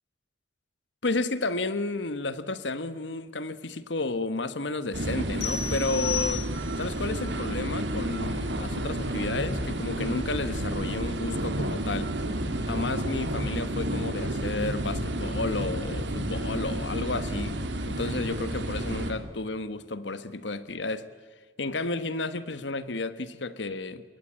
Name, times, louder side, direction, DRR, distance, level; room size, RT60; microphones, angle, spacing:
voice 1, 1.0-6.5 6.8-12.1 12.6-17.6 17.9-21.1 21.6-24.0, left 2 dB, 80° left, 13 dB, 1.3 m, -32 dB
sound 1, 4.9-19.1, right 1 dB, 75° right, 3.1 m, -31 dB
sound 2, 5.4-6.9, left 7 dB, 60° left, 4.7 m, -33 dB
26.5 x 22.5 x 8.8 m, 1.5 s
head